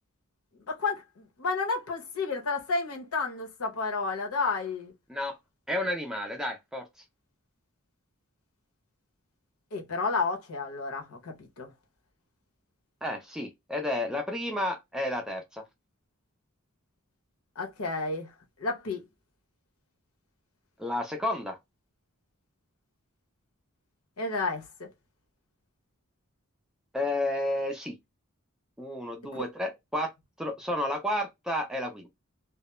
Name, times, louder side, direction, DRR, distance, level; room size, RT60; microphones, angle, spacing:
voice 1, 0.7-4.9 9.7-11.7 17.6-18.3 18.6-19.0 24.2-24.9, left 4 dB, 80° left, 0.8 m, -31 dB
voice 2, 5.7-6.9 13.0-15.6 20.8-21.6 26.9-27.9 28.8-30.1 30.4-32.1, left 1 dB, 5° right, 0.4 m, -31 dB
2.2 x 2.0 x 2.9 m
head